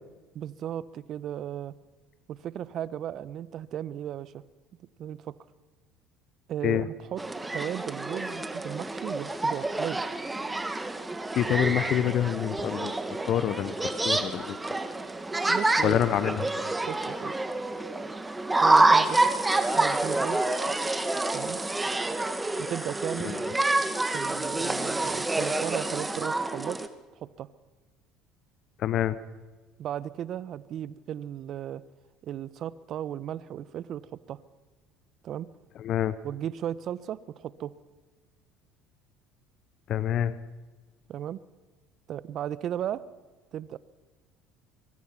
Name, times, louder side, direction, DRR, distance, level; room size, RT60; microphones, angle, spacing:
voice 1, 0.3-1.7 2.3-4.4 5.0-5.4 6.5-7.2 7.5-10.0 15.5-16.0 16.9-17.3 18.6-19.2 19.7-20.4 21.3-21.6 22.6-23.4 24.1-26.8 27.2-27.5 29.8-31.8 32.2-34.4 35.2-35.5 36.2-37.7 41.1-41.4 42.1-43.0 43.5-43.8, right 10 dB, 55° right, 17 dB, 1.1 m, -35 dB
sound 1, 7.2-26.9, right 2 dB, 15° right, 2.2 m, -27 dB
voice 2, 11.3-12.9 13.2-14.6 15.8-16.5 23.2-23.4 28.8-29.2 35.8-36.2 39.9-40.3, left 10 dB, 55° left, 15 dB, 1.1 m, -27 dB
24.5 x 24.0 x 6.0 m, 1.3 s
hypercardioid pair, 70°, 0 cm